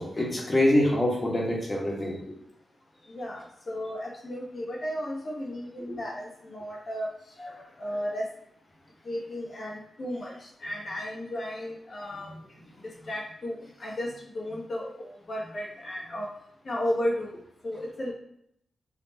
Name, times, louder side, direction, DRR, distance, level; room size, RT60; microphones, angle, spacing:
voice 1, 0.0-2.2 7.4-7.7 12.3-12.4, left 1 dB, 35° left, -2 dB, 1.5 m, -25 dB
voice 2, 3.1-7.1 7.8-8.2 9.0-10.3 10.6-12.3 13.1-16.3 16.6-17.4 17.6-18.1, equal, 50° left, -2 dB, 1.4 m, -34 dB
5.9 x 2.9 x 2.9 m, 0.72 s
cardioid pair, 80°, 0 cm